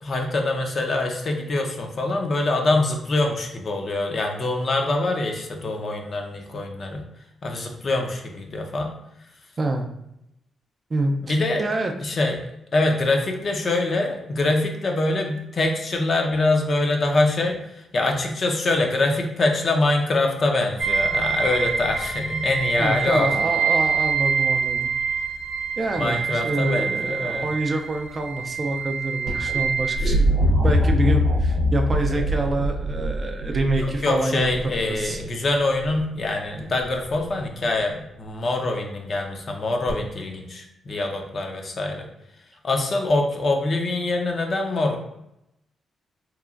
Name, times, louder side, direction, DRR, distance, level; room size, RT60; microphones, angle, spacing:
voice 1, 0.0-7.0 7.4-8.9 11.2-11.6 12.0-12.4 12.7-23.3 25.9-27.5 30.0-30.2 32.3-32.5 33.8-42.1 42.6-45.0, left 2 dB, 45° left, 2 dB, 0.5 m, -24 dB
voice 2, 10.9-11.9 22.8-24.9 25.8-34.5 34.9-35.2, right 2 dB, 35° right, 3 dB, 0.3 m, -26 dB
sound 1, 20.8-30.0, right 6 dB, 50° right, 0.7 m, -25 dB
sound 2, 29.3-35.2 36.8-37.3 39.9-40.0, left 1 dB, 85° right, 0.6 m, -23 dB
2.9 x 2.4 x 2.4 m, 0.83 s
cardioid pair, 95°, 0 cm